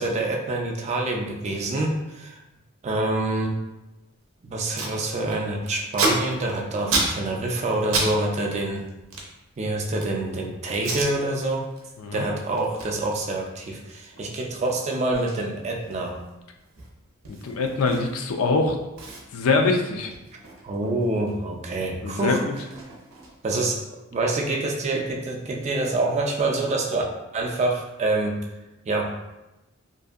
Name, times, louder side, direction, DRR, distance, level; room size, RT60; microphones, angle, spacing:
voice 1, 0.0-2.4 2.8-3.5 4.4-8.9 9.6-11.6 12.1-16.2 20.6-22.4 23.4-23.8 24.1-27.0 27.3-28.4 28.9-29.2, right 2 dB, 30° right, 1 dB, 0.4 m, -26 dB
Packing tape duct tape, 4.2-4.3 4.5-5.0 5.3-8.1 8.4-10.2 10.7-11.1 11.6-11.8 12.1-18.4 18.6-18.7 19.0-21.3 21.6-23.6, right 2 dB, 75° right, 0.6 m, -32 dB
voice 2, 17.3-18.8 19.3-20.1 22.0-22.5, left 3 dB, 80° left, 3 dB, 0.4 m, -23 dB
2.6 x 2.5 x 2.4 m, 0.98 s
head